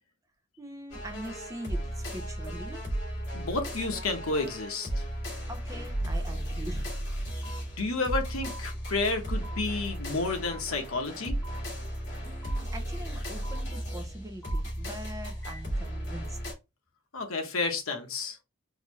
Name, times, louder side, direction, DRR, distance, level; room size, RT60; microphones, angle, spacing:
voice 1, 0.6-2.8 5.5-6.9 12.2-16.4, right 1 dB, 15° right, 0.6 m, -42 dB
sound 1, 0.9-16.5, right 1 dB, 55° left, 2.1 m, -35 dB
voice 2, 3.3-5.0 7.8-11.3 17.1-18.4, left 3 dB, 90° left, 1.0 m, -31 dB
sound 2, 7.4-7.6 8.4-8.6 9.4-9.6 10.4-10.6 11.4-11.6 12.4-12.6 13.4-13.6 14.4-14.6 15.4-15.6, equal, 10° left, 1.2 m, -45 dB
4.0 x 2.6 x 3.0 m
head